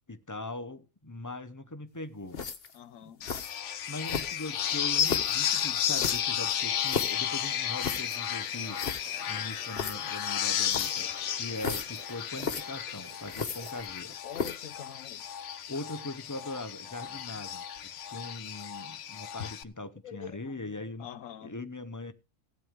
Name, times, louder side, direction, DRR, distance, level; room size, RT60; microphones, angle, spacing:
voice 1, 0.1-2.4 3.9-8.8 9.3-11.1 11.4-14.2 15.7-21.1 21.4-22.1, left 2 dB, 15° left, 0.8 m, -40 dB
sound 1, 2.3-2.8 3.2-3.5 4.0-4.5 5.0-5.4 5.9-7.2 7.8-8.2 8.5-8.6 8.7-9.0 9.7-9.9 10.7-11.0 11.6-12.0 12.3-12.6 13.3-14.0 14.3-14.7, left 5 dB, 50° left, 1.3 m, -34 dB
voice 2, 2.7-3.4 14.2-15.2 17.1-17.4 20.0-20.7 21.0-21.5, left 9 dB, 90° left, 1.2 m, -45 dB
sound 2, 3.2-19.6, left 9 dB, 65° left, 1.0 m, -33 dB
sound 3, 4.6-13.8, right 5 dB, 70° right, 1.6 m, -53 dB
16.0 x 9.2 x 3.7 m
omnidirectional pair, 1.3 m